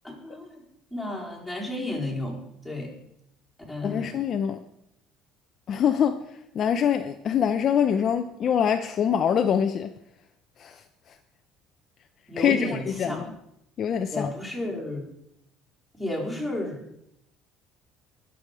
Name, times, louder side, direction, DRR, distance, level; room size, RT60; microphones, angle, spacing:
voice 1, 0.0-0.6 0.9-2.4 2.6-2.9 3.7-4.1 12.3-13.2 14.1-15.1 15.9-16.8, left 1 dB, ahead, -4 dB, 4.0 m, -32 dB
voice 2, 3.8-4.6 5.7-6.2 6.5-9.9 10.6-10.7 12.4-12.6 13.0-13.2 13.8-14.3, left 8 dB, 35° left, 7 dB, 0.6 m, -24 dB
20.0 x 7.1 x 4.9 m, 0.79 s
cardioid pair, 155°, 0 cm